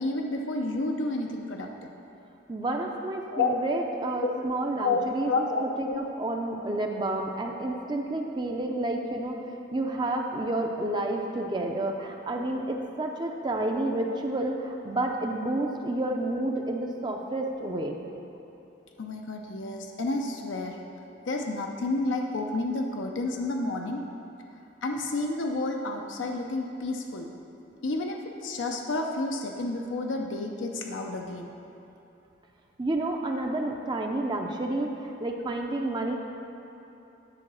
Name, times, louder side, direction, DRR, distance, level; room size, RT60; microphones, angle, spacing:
voice 1, 0.0-1.9 3.3-3.5 4.2-4.4 4.8-5.0 5.3-6.0 19.0-20.8 21.3-24.0 24.8-27.3 27.8-31.5 33.6-33.7, left 2 dB, 85° left, 2 dB, 0.5 m, -30 dB
voice 2, 2.5-9.4 9.7-18.0 32.8-36.2, right 2 dB, 25° right, 2 dB, 0.4 m, -30 dB
9.8 x 3.9 x 6.2 m, 2.9 s
head